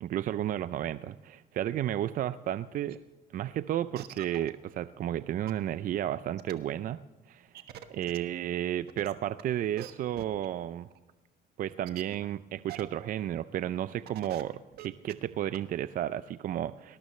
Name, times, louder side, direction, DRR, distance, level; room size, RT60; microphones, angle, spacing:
voice 1, 0.0-3.0 3.3-7.0 7.3-7.6 7.9-10.9 11.6-17.0, right 11 dB, 55° right, 14 dB, 0.5 m, -32 dB
sound 1, 2.9-3.0 3.4-3.5 4.0-4.5 5.1-5.2 5.5-5.6 6.4-6.5 7.5-8.2 8.9-9.4 9.8-9.9 10.2-10.5 10.9-11.0 11.9-12.1 12.7-12.8 13.2-13.3 13.8-13.9 14.1-14.4 14.7-15.1 15.5-15.6, right 12 dB, 70° right, 1.3 m, -44 dB
19.0 x 18.5 x 3.2 m, 1.2 s
cardioid pair, 110°, 17 cm